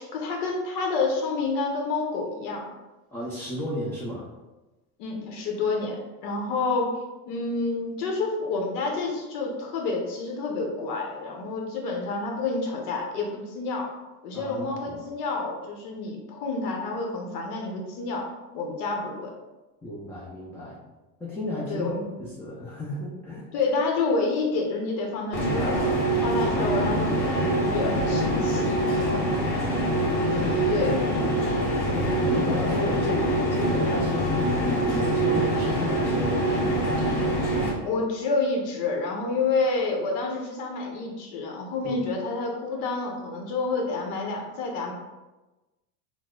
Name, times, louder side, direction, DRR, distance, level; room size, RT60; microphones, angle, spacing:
voice 1, 0.0-2.6 5.0-7.0 7.3-13.9 14.2-18.3 18.5-19.3 21.7-22.0 23.5-28.7 30.7-31.0 37.9-44.9, left 3 dB, 70° left, 1 dB, 0.9 m, -28 dB
voice 2, 3.1-4.3 14.3-15.0 19.8-20.8 21.2-21.9 22.2-23.5 29.0-29.8 30.3-30.6 31.9-37.0, left 1 dB, 5° left, -7 dB, 0.3 m, -33 dB
sound 1, 25.3-37.7, right 1 dB, 40° left, 1.2 m, -24 dB
3.0 x 2.1 x 3.6 m, 1.1 s
supercardioid pair, 100°, 48 cm